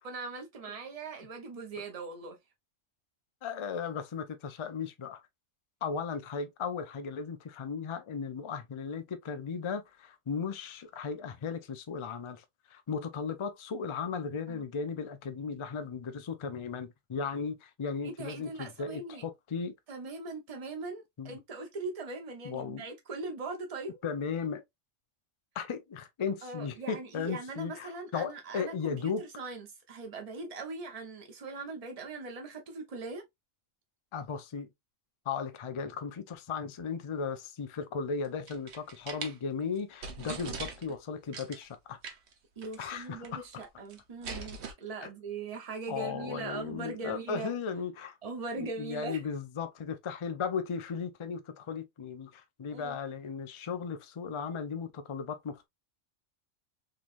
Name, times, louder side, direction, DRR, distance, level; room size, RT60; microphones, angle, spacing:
voice 1, 0.0-2.4 14.5-14.6 18.0-19.2 19.9-24.0 26.4-33.2 42.6-47.5 48.2-49.2 52.7-53.0, right 3 dB, 30° right, 0.9 m, -40 dB
voice 2, 3.4-5.2 5.8-19.7 21.2-21.4 22.4-22.8 24.0-24.6 25.5-29.2 34.1-34.7 35.3-42.0 42.8-43.6 45.9-48.2 48.6-55.7, left 5 dB, 45° left, 0.3 m, -36 dB
sound 1, 38.2-39.3 39.8-39.9 40.0-41.0 41.3-41.7 42.0-42.3 42.6-42.7 43.0-43.6 43.9-44.7, right 4 dB, 60° right, 1.0 m, -41 dB
3.8 x 3.1 x 2.5 m
omnidirectional pair, 1.4 m